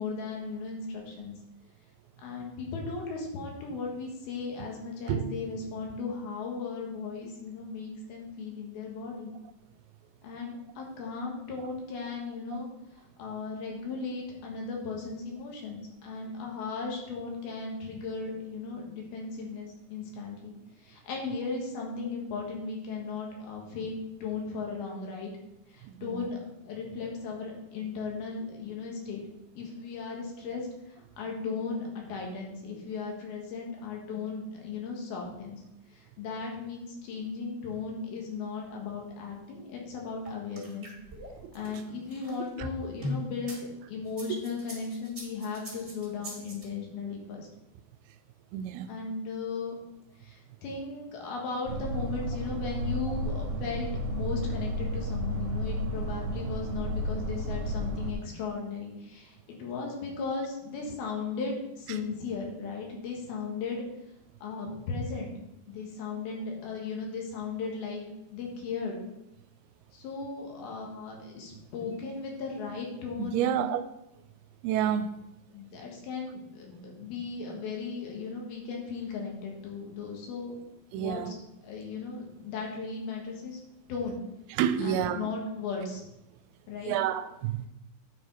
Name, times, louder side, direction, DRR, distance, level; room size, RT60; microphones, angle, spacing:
voice 1, 0.0-1.3 2.2-9.3 10.2-12.7 13.2-20.5 20.8-23.9 24.2-25.3 25.7-26.4 26.6-29.2 29.6-35.6 35.9-40.9 41.6-47.5 48.9-49.8 50.2-63.8 64.4-65.3 65.7-68.0 68.3-69.0 69.9-73.7 75.5-80.6 80.9-83.6 83.9-84.2 84.8-86.0 86.7-87.0, left 4 dB, 80° left, 3.4 m, -36 dB
voice 2, 25.8-26.2 41.4-41.5 48.5-48.9 73.2-73.8 74.6-75.1 80.9-81.3 84.6-85.2 86.9-87.7, right 10 dB, 85° right, 2.5 m, -29 dB
sound 1, 40.3-43.6 44.1-46.6, equal, 20° right, 2.0 m, -40 dB
sound 2, 51.7-58.1, equal, 65° right, 2.5 m, -32 dB
9.4 x 4.7 x 4.6 m
omnidirectional pair, 4.4 m